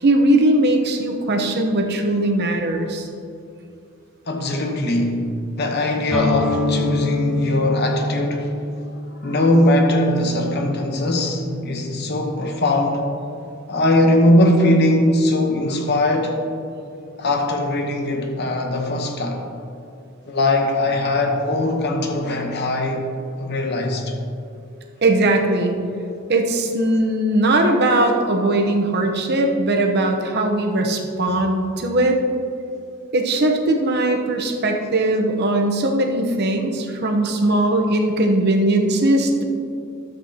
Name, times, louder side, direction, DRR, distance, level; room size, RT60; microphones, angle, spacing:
voice 1, 0.0-3.1 25.0-25.7 26.3-32.2 33.1-39.4, right 1 dB, 50° right, 0.9 m, -19 dB
voice 2, 4.3-5.3 5.6-8.5 9.2-13.1 13.7-16.4 17.2-19.4 20.3-23.1 23.4-24.1, left 1 dB, 50° left, 0.9 m, -20 dB
sound 1, 6.1-13.7, left 2 dB, ahead, 0.8 m, -27 dB
12.0 x 7.7 x 2.8 m
head